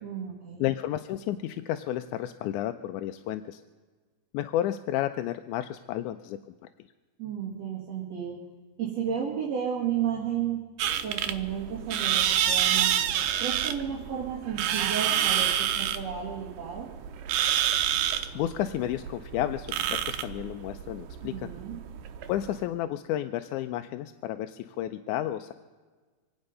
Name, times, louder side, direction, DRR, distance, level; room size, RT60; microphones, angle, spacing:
voice 1, 0.0-0.6 7.2-8.4 8.8-10.6 11.0-13.0 13.4-16.9 21.2-21.7, right 8 dB, 55° right, -4 dB, 3.1 m, -33 dB
voice 2, 0.6-3.6 4.3-6.4 18.4-21.5 22.3-25.5, left 12 dB, 80° left, 9 dB, 1.9 m, -31 dB
sound 1, 10.8-22.6, right 10 dB, 90° right, 2.5 m, -28 dB
26.0 x 9.0 x 5.4 m, 1.4 s
omnidirectional pair, 3.8 m